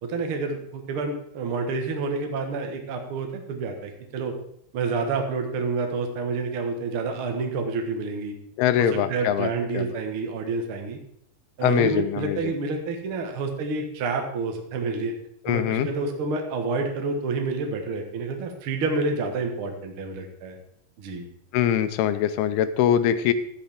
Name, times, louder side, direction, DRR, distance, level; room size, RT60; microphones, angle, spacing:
voice 1, 0.0-4.3 4.7-8.4 9.1-11.0 11.6-15.1 15.4-20.5 21.0-21.3, right 4 dB, 60° right, 3 dB, 1.4 m, -28 dB
voice 2, 8.6-10.0 11.6-12.5 15.5-15.9 21.5-23.3, left 10 dB, 80° left, 11 dB, 2.5 m, -23 dB
13.5 x 10.5 x 3.6 m, 0.68 s
omnidirectional pair, 4.7 m